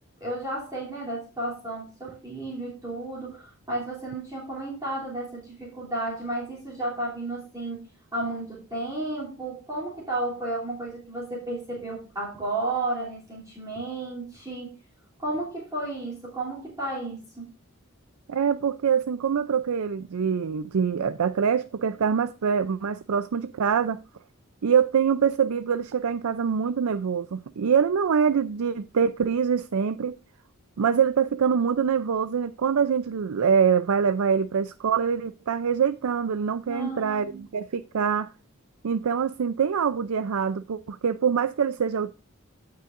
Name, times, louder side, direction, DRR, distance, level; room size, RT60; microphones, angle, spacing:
voice 1, 0.2-14.7 15.2-17.5 36.7-37.4, right 2 dB, 15° right, 2.9 m, -33 dB
voice 2, 18.3-24.0 24.6-30.2 30.8-38.3 38.8-42.1, right 7 dB, 85° right, 0.4 m, -24 dB
16.5 x 5.6 x 2.5 m
head